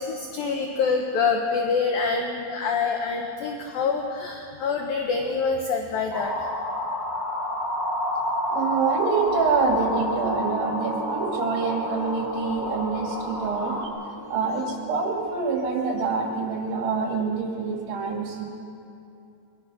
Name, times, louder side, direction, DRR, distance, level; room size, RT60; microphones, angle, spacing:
voice 1, 0.0-6.5, left 5 dB, 70° left, 2 dB, 2.3 m, -26 dB
sound 1, 6.1-13.9, left 1 dB, 10° left, 2.7 m, -29 dB
voice 2, 8.5-13.8 14.3-18.5, right 5 dB, 70° right, 0 dB, 4.6 m, -26 dB
sound 2, 9.1-16.5, equal, 15° right, 4.1 m, -40 dB
23.0 x 22.0 x 6.2 m, 2.6 s
omnidirectional pair, 5.6 m